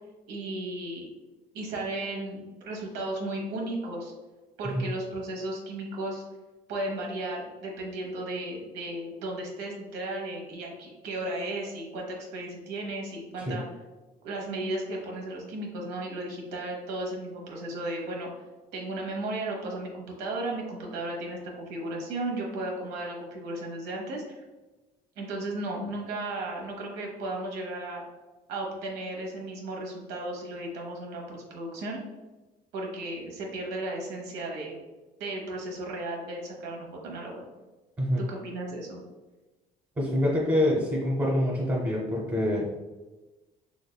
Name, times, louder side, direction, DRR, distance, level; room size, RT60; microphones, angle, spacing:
voice 1, 0.3-1.1 1.5-4.1 4.6-6.2 6.7-13.6 14.2-18.3 18.7-24.4 25.2-28.1 28.5-32.0 32.7-34.8 35.2-37.4 38.2-39.0, right 2 dB, 85° right, -1 dB, 1.0 m, -35 dB
voice 2, 40.0-42.7, left 1 dB, 20° right, -4 dB, 0.8 m, -26 dB
3.5 x 3.3 x 2.2 m, 1.2 s
cardioid pair, 110°, 17 cm